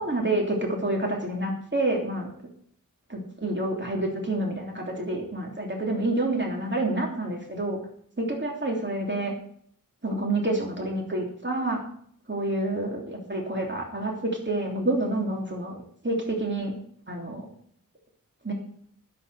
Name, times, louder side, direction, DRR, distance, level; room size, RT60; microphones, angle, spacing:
voice 1, 0.0-2.3 3.1-7.8 8.2-9.3 10.0-11.8 12.3-15.8 16.0-16.7 17.1-17.4 18.4-18.5, right 2 dB, 35° right, 0 dB, 3.1 m, -28 dB
10.0 x 7.8 x 8.1 m, 0.62 s
wide cardioid pair, 45°, 34 cm